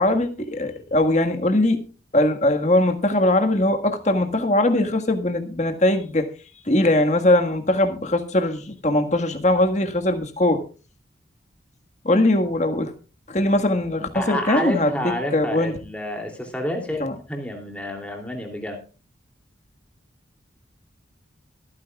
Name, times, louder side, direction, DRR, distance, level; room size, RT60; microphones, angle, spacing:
voice 1, 0.0-1.8 2.1-6.3 6.7-10.6 12.0-12.9 13.3-15.7 17.0-17.1, left 1 dB, 40° left, 6 dB, 1.6 m, -21 dB
voice 2, 14.1-18.8, left 1 dB, 5° left, 2 dB, 2.8 m, -29 dB
23.5 x 9.9 x 2.4 m, 0.34 s
head